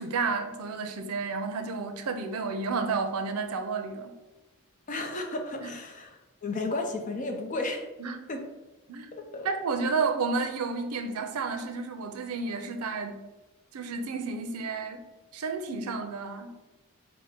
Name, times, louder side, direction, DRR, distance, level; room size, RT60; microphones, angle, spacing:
voice 1, 0.0-4.1 5.6-5.7 8.0-8.2 8.9-9.1 9.4-13.2 13.7-15.0 15.3-16.6, right 4 dB, 85° right, 7 dB, 0.5 m, -31 dB
voice 2, 4.9-7.9 8.3-8.4 9.1-9.5, left 2 dB, 35° left, 4 dB, 0.5 m, -33 dB
5.0 x 2.1 x 4.3 m, 1.1 s
head